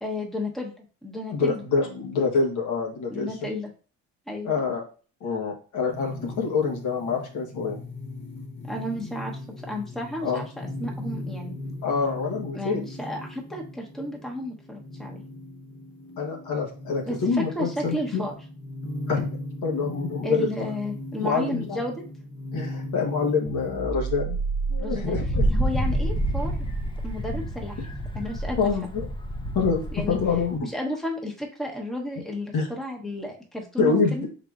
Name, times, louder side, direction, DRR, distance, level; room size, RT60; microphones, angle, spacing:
voice 1, 0.0-1.6 3.1-3.7 4.3-4.6 8.6-11.6 12.5-15.2 17.0-18.4 20.2-22.0 24.8-25.2 25.5-26.5 27.0-27.8 28.1-28.7 29.9-30.2 30.6-34.3, left 1 dB, ahead, 0 dB, 0.9 m, -32 dB
voice 2, 1.3-3.3 4.4-4.8 5.2-7.8 10.2-10.5 11.8-12.8 16.2-18.2 19.1-19.3 19.6-20.5 21.2-21.8 22.5-24.4 24.7-25.5 28.6-28.9 29.5-30.7 32.5-32.7 33.8-34.3, left 5 dB, 75° left, -1 dB, 1.2 m, -26 dB
sound 1, 5.9-23.9, left 1 dB, 40° left, 0.8 m, -38 dB
sound 2, 23.5-27.9, right 5 dB, 40° right, 0.7 m, -33 dB
Wind, 25.1-30.6, right 1 dB, 15° left, 0.5 m, -28 dB
4.7 x 4.0 x 2.4 m, 0.39 s
cardioid pair, 90°, 30 cm